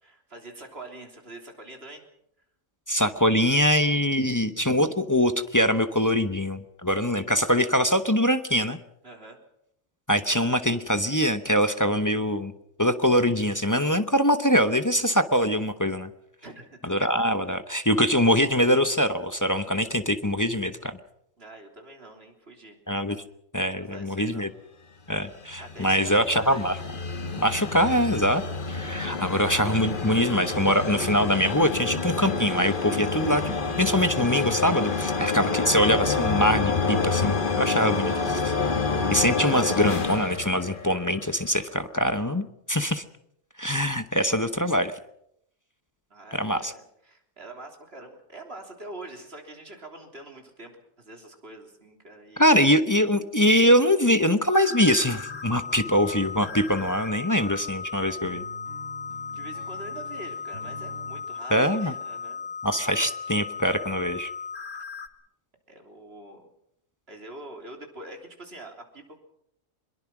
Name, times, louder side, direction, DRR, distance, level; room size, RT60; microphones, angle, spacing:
voice 1, 0.0-2.0 9.0-9.4 16.4-16.9 21.4-22.8 23.7-24.5 25.6-26.6 46.1-52.6 59.3-62.5 65.7-66.5 67.1-69.2, right 2 dB, 50° right, 3 dB, 3.7 m, -44 dB
voice 2, 2.9-8.8 10.1-12.5 12.8-16.1 16.9-21.0 22.9-23.2 23.5-24.5 25.1-26.8 27.4-28.4 28.7-38.5 39.1-43.0 43.6-44.9 46.3-46.7 52.4-58.4 61.5-61.9 62.6-64.3, equal, 15° left, 9 dB, 0.8 m, -23 dB
sound 1, 25.2-41.3, left 4 dB, 40° left, 1.6 m, -28 dB
sound 2, 54.5-65.1, left 5 dB, 70° left, 1.7 m, -37 dB
sound 3, 55.2-61.3, right 1 dB, 80° right, 5.0 m, -47 dB
23.0 x 22.0 x 6.1 m, 0.76 s
omnidirectional pair, 1.3 m